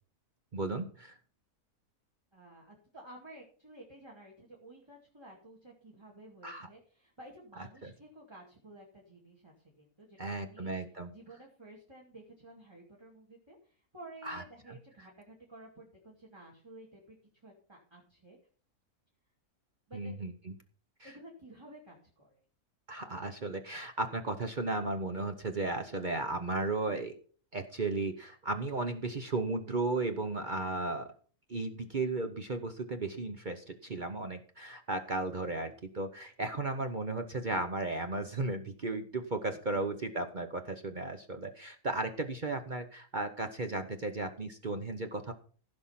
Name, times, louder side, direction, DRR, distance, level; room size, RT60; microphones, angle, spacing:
voice 1, 0.5-1.2 6.4-6.7 7.8-7.9 10.2-11.1 14.2-14.8 19.9-20.5 21.0-21.1 22.9-27.2 27.5-31.1 31.5-45.3, right 2 dB, 40° right, 6 dB, 0.9 m, -35 dB
voice 2, 2.3-10.7 11.1-18.4 19.9-20.2 21.0-22.4 23.1-23.2, right 1 dB, 15° right, -2 dB, 2.3 m, -53 dB
15.5 x 5.4 x 5.6 m, 0.42 s
omnidirectional pair, 1.6 m